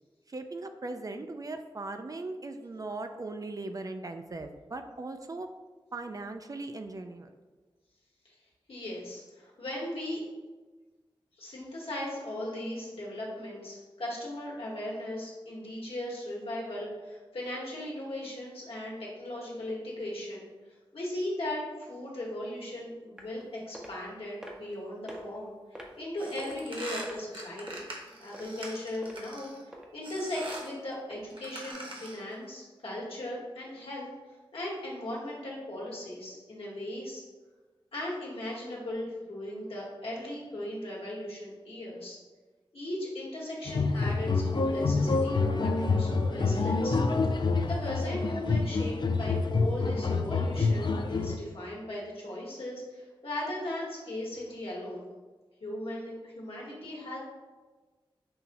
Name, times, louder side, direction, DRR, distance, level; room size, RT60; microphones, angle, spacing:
voice 1, 0.3-5.5 5.9-7.3, right 2 dB, 40° right, 6 dB, 0.4 m, -39 dB
voice 2, 8.7-10.2 11.4-20.5 20.9-27.9 28.2-29.5 29.9-34.1 34.5-37.2 37.9-42.2 42.7-47.0 47.6-55.1 55.6-57.2, left 1 dB, 75° left, -4 dB, 1.2 m, -37 dB
sound 1, 23.2-23.4 23.7-23.9 24.4-24.7 25.1-25.2 25.8-26.0 26.4-26.7 27.0-27.8 28.3-28.7 29.0-29.2 29.7-29.9 30.4-30.6 31.1-31.2 31.7-31.8, equal, 5° right, 0.8 m, -44 dB
sound 2, 26.2-29.6 30.0-30.7 31.3-32.3, right 1 dB, 65° right, 0.9 m, -43 dB
sound 3, 43.7-51.4, left 3 dB, 50° left, 0.4 m, -27 dB
5.6 x 2.8 x 2.5 m, 1.3 s
cardioid pair, 45°, 10 cm